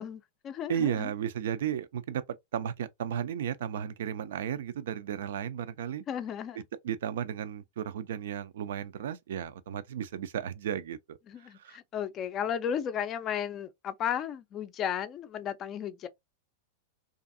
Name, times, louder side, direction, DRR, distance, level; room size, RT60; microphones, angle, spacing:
voice 1, 0.0-1.1 6.1-6.6 11.3-16.1, left 9 dB, 35° left, 0.4 m, -34 dB
voice 2, 0.7-2.2 2.5-6.0 6.8-11.2 11.6-11.8, right 9 dB, 70° right, 0.3 m, -34 dB
2.5 x 2.4 x 2.4 m
hypercardioid pair, 95°, 0 cm